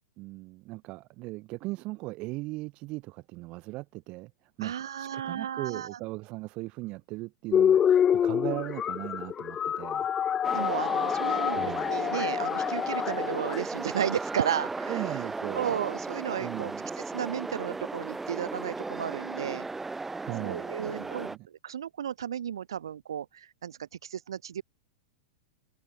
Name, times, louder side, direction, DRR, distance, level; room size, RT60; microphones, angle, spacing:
voice 1, 0.2-4.3 4.6-10.1 11.5-11.9 14.9-15.8 16.4-16.8 20.2-21.4, right 22 dB, 45° right, 2.6 m, -38 dB
voice 2, 4.6-6.0 10.5-15.2 15.5-19.7 20.4-24.6, right 9 dB, 90° right, 2.2 m, -34 dB
sound 1, 7.5-13.6, left 9 dB, 25° left, 2.1 m, -27 dB
sound 2, 10.4-21.4, right 3 dB, 10° right, 4.8 m, -36 dB
hypercardioid pair, 130°, 2 cm